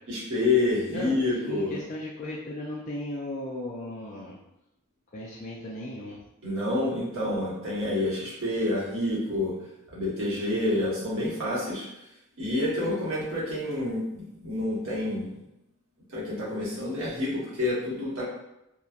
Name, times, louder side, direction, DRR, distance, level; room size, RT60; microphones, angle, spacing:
voice 1, 0.1-1.8 6.4-9.5 9.9-11.9 12.4-15.4 16.1-18.2, left 2 dB, 65° right, -6 dB, 1.0 m, -28 dB
voice 2, 0.9-4.4 5.1-6.2, left 1 dB, 35° left, -5 dB, 0.3 m, -36 dB
2.8 x 2.1 x 2.3 m, 0.87 s
head